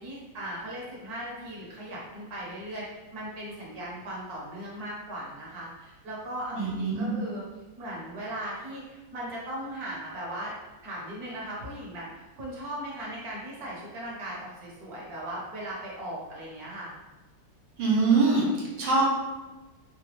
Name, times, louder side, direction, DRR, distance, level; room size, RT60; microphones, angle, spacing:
voice 1, 0.0-7.4 7.8-10.5 10.8-16.9, right 1 dB, 55° right, -5 dB, 1.3 m, -38 dB
voice 2, 6.5-7.1 17.8-19.0, right 3 dB, 80° right, -4 dB, 1.6 m, -24 dB
3.9 x 2.2 x 3.1 m, 1.2 s
omnidirectional pair, 2.1 m